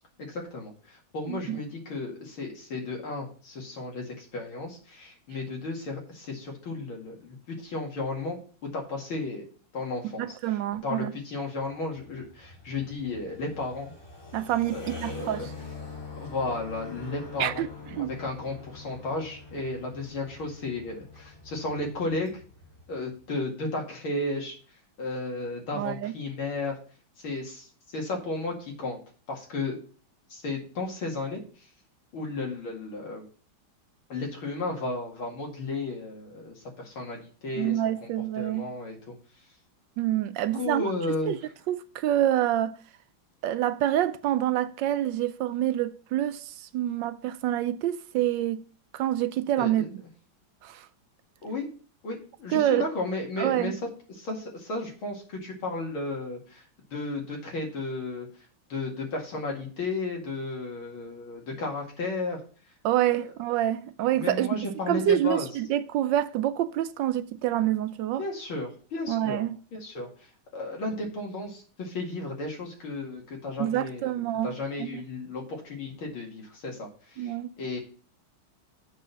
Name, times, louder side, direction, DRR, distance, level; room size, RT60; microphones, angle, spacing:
voice 1, 0.2-9.5 9.7-10.2 10.8-13.9 14.7-15.5 16.2-17.7 18.0-22.3 22.9-24.5 25.0-26.8 27.2-27.7 27.9-29.0 29.3-29.8 30.3-31.4 32.1-33.2 34.1-37.7 38.0-38.1 38.4-39.2 40.5-41.3 49.6-49.9 51.4-51.7 52.0-53.7 54.1-56.6 56.9-58.3 58.7-62.4 64.1-65.5 68.2-69.4 69.7-70.1 70.5-74.2 74.4-77.8, left 2 dB, 80° left, 3.0 m, -34 dB
voice 2, 1.3-1.6 10.2-11.1 14.3-15.5 17.4-18.2 25.7-26.2 37.5-38.7 40.0-40.8 41.3-41.4 41.7-42.8 43.4-48.7 48.9-49.9 50.6-50.9 52.5-52.9 53.4-53.8 62.8-64.6 64.9-68.2 69.1-69.6 73.6-75.0 77.2-77.5, right 12 dB, 75° right, 1.1 m, -27 dB
sound 1, 11.8-23.2, left 4 dB, 10° left, 2.4 m, -44 dB
7.3 x 6.1 x 5.7 m
omnidirectional pair, 2.2 m